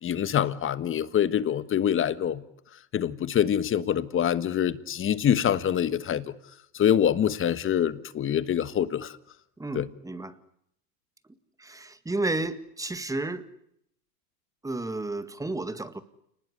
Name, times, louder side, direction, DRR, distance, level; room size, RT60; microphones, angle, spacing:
voice 1, 0.0-2.4 2.9-6.3 6.7-9.1 9.7-9.9, left 9 dB, 25° left, 1.5 m, -25 dB
voice 2, 9.6-10.3 11.6-13.5 14.6-16.0, right 2 dB, 5° right, 1.9 m, -32 dB
29.0 x 20.0 x 9.8 m
supercardioid pair, 130°, 48 cm